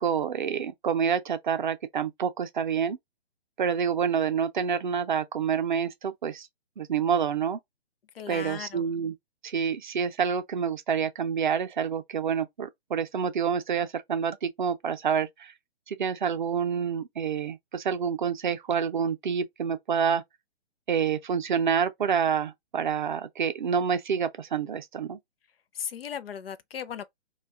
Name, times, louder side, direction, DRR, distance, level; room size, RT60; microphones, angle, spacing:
voice 1, 0.0-3.0 3.6-6.5 6.8-7.6 8.3-9.1 9.4-15.5 15.9-20.2 20.9-25.2, right 7 dB, 50° right, 0.4 m, -28 dB
voice 2, 8.2-8.8 25.7-27.0, left 8 dB, 60° left, 0.5 m, -36 dB
2.3 x 2.2 x 3.4 m
figure-of-eight pair, 130°, 32 cm